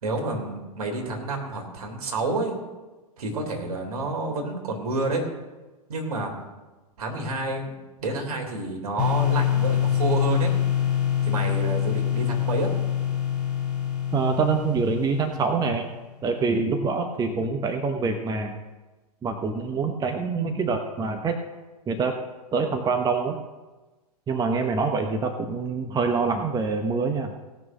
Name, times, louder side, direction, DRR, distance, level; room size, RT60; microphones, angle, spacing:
voice 1, 0.0-2.6 3.2-5.3 5.9-6.3 7.0-10.5 11.2-12.7, right 2 dB, 70° right, 2 dB, 3.4 m, -29 dB
sound 1, 9.0-15.8, left 10 dB, 5° right, 3.0 m, -25 dB
voice 2, 14.1-15.9 16.2-18.5 19.2-21.4 21.9-22.2 22.5-23.4 24.3-27.3, right 4 dB, 20° right, 6 dB, 1.0 m, -25 dB
17.5 x 6.3 x 6.2 m, 1.2 s
hypercardioid pair, 105°, 20 cm